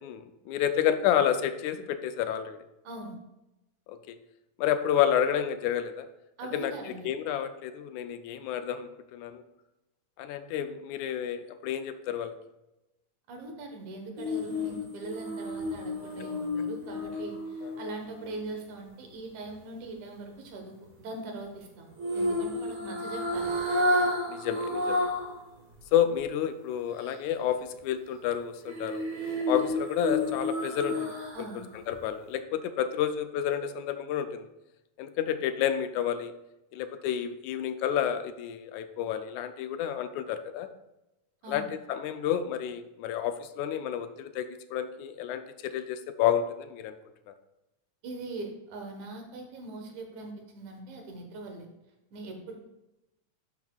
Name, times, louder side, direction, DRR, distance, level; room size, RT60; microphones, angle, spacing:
voice 1, 0.0-2.6 3.9-4.2 4.6-6.1 6.5-6.7 7.1-9.4 10.2-12.3 17.6-17.7 24.3-25.1 25.9-29.0 29.5-31.5 31.9-34.5 35.0-36.3 36.7-40.7 41.5-46.9 47.3-47.4, left 9 dB, 80° left, 9 dB, 1.9 m, -30 dB
voice 2, 2.8-3.2 6.4-7.1 13.3-23.6 31.3-31.7 41.4-41.7 48.0-51.7 52.1-52.6, right 2 dB, 75° right, 3 dB, 2.5 m, -41 dB
sound 1, 14.2-18.4 22.0-25.4 25.7-25.8 28.7-31.5 31.9-32.0, left 1 dB, 40° right, 1.3 m, -31 dB
11.5 x 6.4 x 2.3 m, 0.92 s
omnidirectional pair, 3.4 m